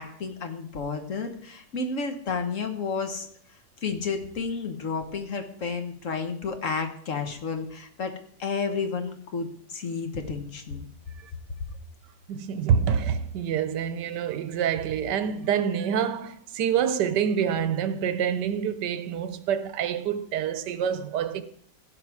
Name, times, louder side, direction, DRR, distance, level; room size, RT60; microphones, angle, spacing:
voice 1, 0.0-3.3 3.8-10.9, left 5 dB, 50° left, 1.3 m, -31 dB
voice 2, 12.3-21.4, right 8 dB, 80° right, 1.3 m, -26 dB
15.5 x 5.5 x 4.8 m
omnidirectional pair, 1.8 m